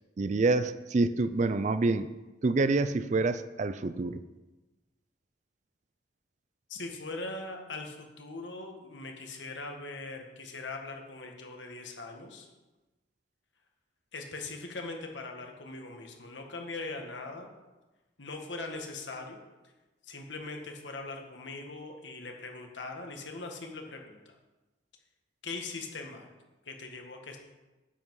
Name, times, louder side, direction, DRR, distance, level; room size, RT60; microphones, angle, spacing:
voice 1, 0.2-2.1 2.4-4.2, right 3 dB, 40° right, 13 dB, 0.4 m, -27 dB
voice 2, 6.7-12.5 14.1-17.5 18.2-19.4 20.0-24.4 25.4-26.3 26.6-27.4, left 3 dB, 75° left, 3 dB, 1.6 m, -41 dB
10.0 x 7.6 x 4.8 m, 1.1 s
head